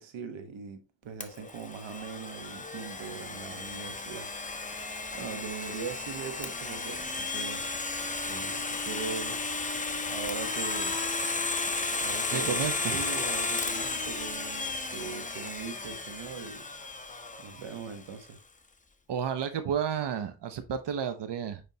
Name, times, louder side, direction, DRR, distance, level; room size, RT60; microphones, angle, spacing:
voice 1, 0.0-4.3 5.1-7.6 8.2-9.4 10.1-11.0 12.0-12.6 12.9-16.7 17.4-18.4, right 6 dB, 90° right, 1.2 m, -40 dB
Domestic sounds home sounds, 1.2-18.0, left 3 dB, 15° left, 0.9 m, -34 dB
voice 2, 12.3-13.0 19.1-21.6, right 8 dB, 65° right, 0.9 m, -31 dB
9.5 x 3.5 x 2.8 m
cardioid pair, 75°, 45 cm